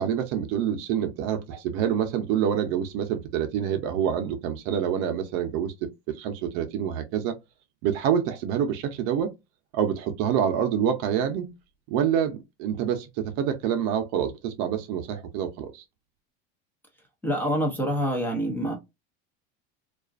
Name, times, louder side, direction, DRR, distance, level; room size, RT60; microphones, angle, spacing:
voice 1, 0.0-7.3 7.8-9.3 9.7-11.5 11.9-15.8, right 9 dB, 55° right, 0.5 m, -27 dB
voice 2, 17.2-18.7, equal, 5° left, 0.4 m, -26 dB
2.3 x 2.3 x 2.3 m
cardioid pair, 160°, 29 cm